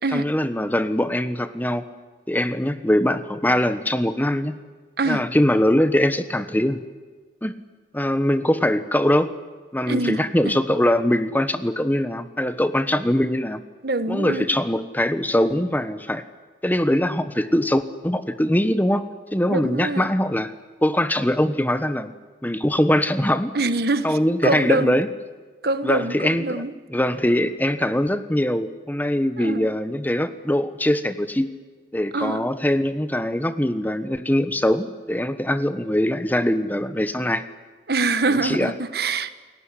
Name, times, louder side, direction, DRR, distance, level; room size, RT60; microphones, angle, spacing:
voice 1, 0.1-1.8 2.3-4.6 5.1-6.8 7.4-7.6 7.9-9.3 9.7-13.6 14.1-16.2 16.6-20.5 20.8-22.1 22.4-23.5 24.0-25.1 25.8-26.6 26.9-31.5 31.9-37.4 38.3-38.7, left 1 dB, 10° left, 1.2 m, -22 dB
voice 2, 5.0-5.3 9.9-10.6 13.8-14.5 19.5-20.1 23.5-25.0 25.6-26.7 29.4-29.7 32.1-32.5 37.9-39.4, right 2 dB, 60° right, 1.4 m, -25 dB
29.0 x 18.5 x 9.9 m
head